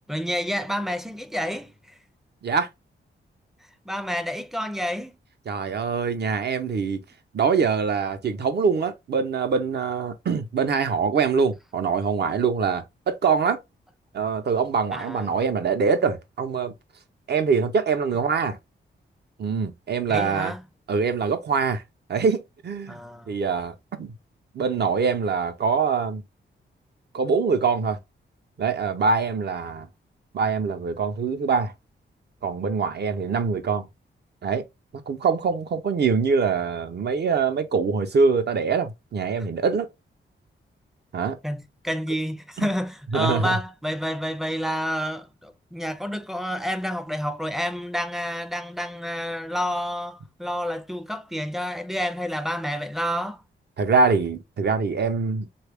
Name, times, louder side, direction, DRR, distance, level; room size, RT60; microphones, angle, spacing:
voice 1, 0.1-1.7 3.9-5.2 14.9-15.4 20.1-20.6 22.9-23.4 41.4-53.4, equal, ahead, 0.4 m, -29 dB
voice 2, 5.5-7.0 7.3-13.6 14.1-16.7 17.3-18.6 19.4-20.5 20.9-21.8 22.1-23.0 23.3-24.1 24.5-26.2 27.1-28.0 28.6-29.9 30.3-31.7 32.4-33.9 34.4-34.6 35.1-39.9 41.1-41.4 42.6-42.7 43.1-43.6 53.8-55.5, right 5 dB, 55° right, 0.7 m, -24 dB
3.2 x 2.3 x 3.4 m
cardioid pair, 80°, 20 cm